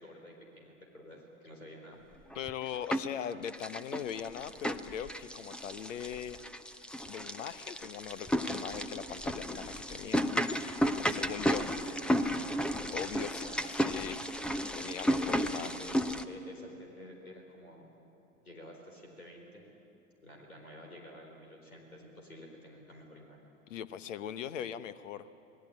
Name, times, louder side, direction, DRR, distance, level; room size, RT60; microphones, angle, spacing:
voice 1, 0.0-2.0 11.1-11.3 11.7-14.2 15.1-17.9 18.4-19.7 20.2-23.6, left 1 dB, 85° left, 1 dB, 4.5 m, -51 dB
voice 2, 2.3-6.4 7.1-10.4 11.1-11.7 12.9-14.2 14.7-15.7 23.7-25.3, left 9 dB, 60° left, 14 dB, 1.1 m, -40 dB
sound 1, 2.3-3.2 3.5-16.2, equal, ahead, 0.5 m, -33 dB
26.5 x 20.0 x 8.7 m, 2.8 s
figure-of-eight pair, 95°, 42 cm